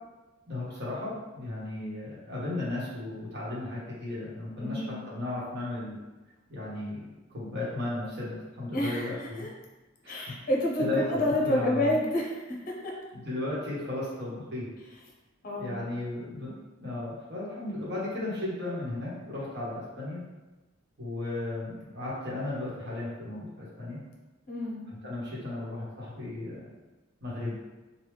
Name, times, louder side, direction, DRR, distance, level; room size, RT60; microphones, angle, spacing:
voice 1, 0.4-4.8 5.1-6.0 6.5-9.5 10.0-10.3 10.8-11.9 13.1-14.7 15.6-16.5 16.8-20.2 21.0-24.0 24.9-26.7 27.2-27.5, left 2 dB, 60° right, -6 dB, 1.1 m, -35 dB
voice 2, 4.6-5.0 8.7-9.5 10.1-12.9 15.4-15.8 24.5-24.8, left 1 dB, 45° left, -2 dB, 0.7 m, -29 dB
3.3 x 2.2 x 3.2 m, 1.2 s
head